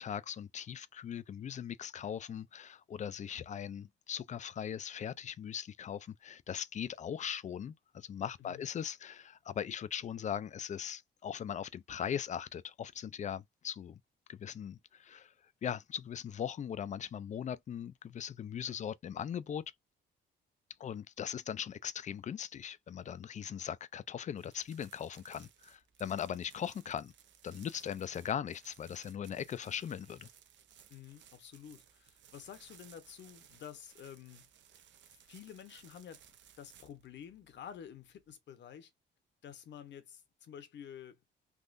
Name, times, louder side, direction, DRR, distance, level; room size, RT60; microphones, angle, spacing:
voice 1, 0.0-14.0 14.3-15.3 15.6-19.6 20.8-27.1 27.4-30.3, left 8 dB, 40° left, 0.4 m, -39 dB
sound 1, 24.3-38.3, right 9 dB, 65° right, 0.7 m, -61 dB
voice 2, 30.9-34.5 35.3-36.2 36.6-38.9 39.4-41.2, left 9 dB, 65° left, 1.0 m, -50 dB
3.6 x 2.4 x 2.5 m
cardioid pair, 90°, 20 cm